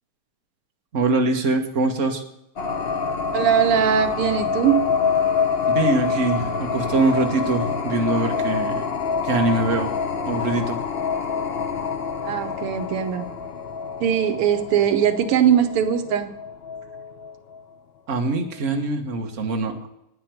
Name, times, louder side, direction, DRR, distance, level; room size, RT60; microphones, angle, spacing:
voice 1, 0.9-2.2 5.7-8.8 9.2-9.9 10.3-10.8 18.1-19.8, right 3 dB, 35° right, 3 dB, 1.7 m, -23 dB
sound 1, 2.6-17.6, left 5 dB, 80° left, 0.5 m, -26 dB
voice 2, 3.3-4.8 12.2-13.3 14.0-16.3, right 9 dB, 85° right, 8 dB, 1.9 m, -20 dB
10.5 x 9.7 x 7.8 m, 0.81 s
omnidirectional pair, 2.4 m